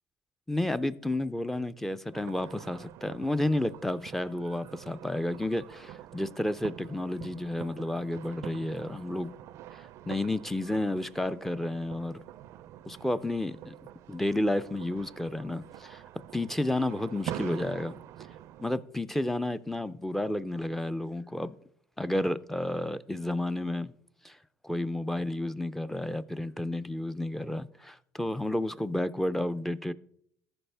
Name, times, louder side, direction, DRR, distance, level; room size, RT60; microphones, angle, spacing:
voice 1, 0.5-9.3 9.7-12.2 12.8-13.8 14.1-16.0 16.3-18.0 18.6-21.5 22.0-23.9 24.2-24.4 24.6-29.9, left 1 dB, 5° left, 0.4 m, -31 dB
sound 1, 2.1-18.8, right 12 dB, 60° right, 0.4 m, -45 dB
14.0 x 4.8 x 3.4 m
supercardioid pair, 90°, 6 cm